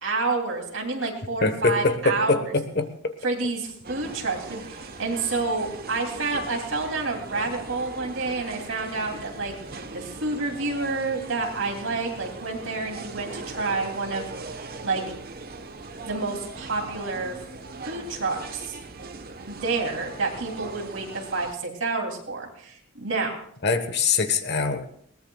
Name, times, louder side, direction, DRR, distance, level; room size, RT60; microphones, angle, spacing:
voice 1, 0.0-2.5 3.2-9.5 9.9-14.3 14.8-15.0 16.0-17.4 17.8-18.8 19.5-23.3, right 3 dB, 65° right, 1 dB, 3.2 m, -29 dB
voice 2, 1.4-3.1 23.6-24.9, left 4 dB, 55° left, 9 dB, 1.4 m, -23 dB
sound 1, 3.8-21.5, right 3 dB, 45° right, 1.2 m, -40 dB
21.0 x 18.5 x 2.4 m, 0.64 s
head